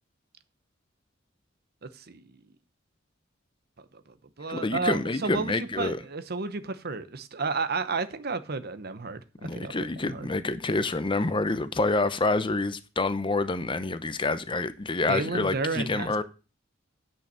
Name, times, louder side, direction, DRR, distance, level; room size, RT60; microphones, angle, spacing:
voice 1, 1.8-2.2 4.4-10.3 15.1-16.2, right 4 dB, 55° right, 0.9 m, -32 dB
voice 2, 4.5-6.0 9.4-16.2, left 3 dB, 25° left, 0.8 m, -27 dB
9.2 x 5.6 x 6.9 m
head